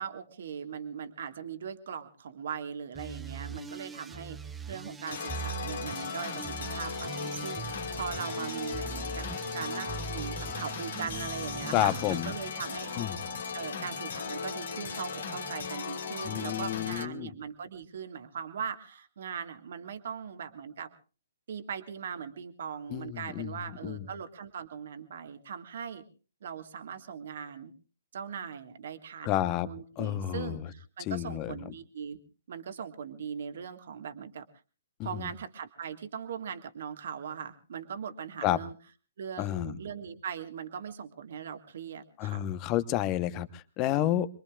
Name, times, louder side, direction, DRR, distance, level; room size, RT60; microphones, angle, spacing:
voice 1, 0.0-4.4 4.7-9.3 9.5-13.1 13.5-20.9 21.5-26.1 26.4-27.7 28.1-32.2 32.5-34.5 35.0-38.7 39.2-42.5 43.8-44.2, right 7 dB, 60° right, 7 dB, 1.8 m, -40 dB
sound 1, 2.9-12.2, right 5 dB, 10° right, 0.8 m, -41 dB
sound 2, 5.1-17.1, left 5 dB, 65° left, 2.5 m, -37 dB
voice 2, 11.7-12.3 13.0-13.2 16.2-17.3 22.9-24.0 29.2-29.7 30.0-30.7 31.0-31.6 35.0-35.2 38.4-38.6 39.4-39.8 42.2-44.3, left 13 dB, 30° left, 14 dB, 1.0 m, -30 dB
26.5 x 22.5 x 2.4 m, 0.36 s
figure-of-eight pair, 130°, 0 cm